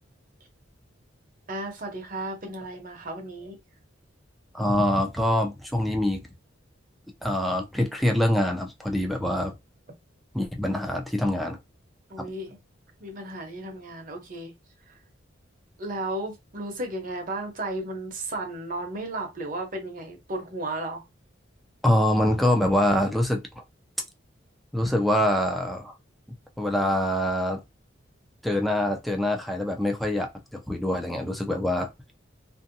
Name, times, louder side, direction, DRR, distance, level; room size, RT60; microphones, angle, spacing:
voice 1, 1.5-3.6 12.1-12.6 13.0-14.5 14.9-15.0 15.8-21.0, right 1 dB, 45° right, 0.8 m, -34 dB
voice 2, 4.5-6.2 7.2-9.5 10.3-11.6 21.8-23.4 24.7-25.9 26.6-27.6 28.4-30.3 30.7-31.9, left 1 dB, ahead, 0.4 m, -24 dB
2.6 x 2.2 x 2.6 m
head